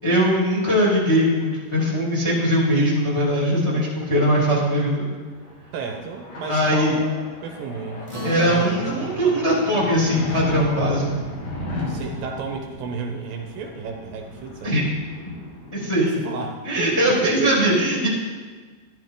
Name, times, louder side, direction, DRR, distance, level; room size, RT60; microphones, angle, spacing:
voice 1, 0.0-5.2 6.5-6.9 8.2-11.1 14.6-14.8 15.7-16.1 16.6-18.1, equal, 10° left, -5 dB, 2.3 m, -20 dB
sound 1, 5.1-16.4, left 1 dB, 50° left, 2.9 m, -35 dB
voice 2, 5.7-9.2 11.8-14.8 16.0-17.6, right 5 dB, 75° right, 2 dB, 2.5 m, -32 dB
Acoustic guitar, 8.1-12.8, equal, 15° right, 1.0 m, -38 dB
12.0 x 11.5 x 3.8 m, 1.4 s
omnidirectional pair, 4.4 m